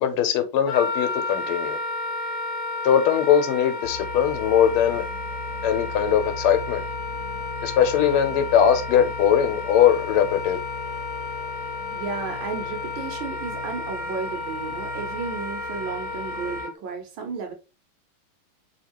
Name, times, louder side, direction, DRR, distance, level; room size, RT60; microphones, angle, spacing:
voice 1, 0.0-1.8 2.8-5.1 5.6-6.8 7.6-10.6, left 9 dB, 85° left, 1.6 m, -20 dB
Wind instrument woodwind instrument, 0.6-16.7, left 3 dB, 40° left, 1.4 m, -32 dB
sound 1, 3.8-16.6, left 1 dB, 65° left, 1.4 m, -39 dB
voice 2, 11.9-17.5, right 5 dB, 70° right, 1.6 m, -33 dB
3.5 x 2.8 x 2.9 m
omnidirectional pair, 2.3 m